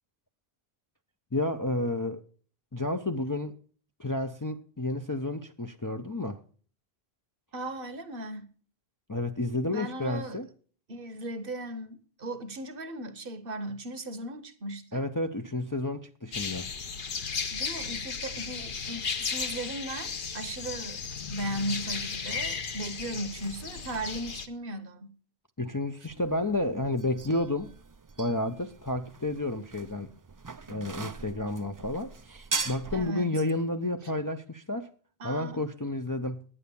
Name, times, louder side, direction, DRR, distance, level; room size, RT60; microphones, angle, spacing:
voice 1, 1.3-2.2 2.7-3.6 4.0-6.4 9.1-10.5 14.9-16.7 25.6-27.7 28.2-30.1 30.7-34.9 35.2-36.4, left 2 dB, 25° left, 0.5 m, -31 dB
voice 2, 7.5-8.5 9.6-10.4 10.9-15.0 17.5-25.1 32.9-33.3 35.2-35.6, right 1 dB, 60° right, 1.2 m, -37 dB
sound 1, 16.3-24.5, left 5 dB, 55° left, 1.0 m, -35 dB
sound 2, 26.1-33.1, right 4 dB, 30° right, 0.3 m, -40 dB
9.9 x 9.4 x 6.9 m
omnidirectional pair, 1.1 m